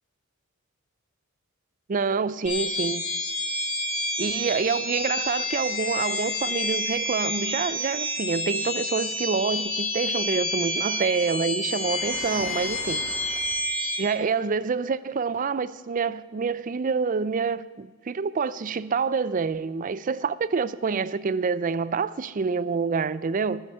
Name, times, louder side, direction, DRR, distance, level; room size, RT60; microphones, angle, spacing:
voice 1, 1.9-3.0 4.2-13.0 14.0-23.6, right 5 dB, 40° right, 0.4 m, -27 dB
sound 1, 2.5-14.0, left 1 dB, 30° left, 2.5 m, -29 dB
Waves surf, 11.6-13.7, left 1 dB, 10° left, 2.1 m, -42 dB
9.4 x 8.9 x 9.8 m
head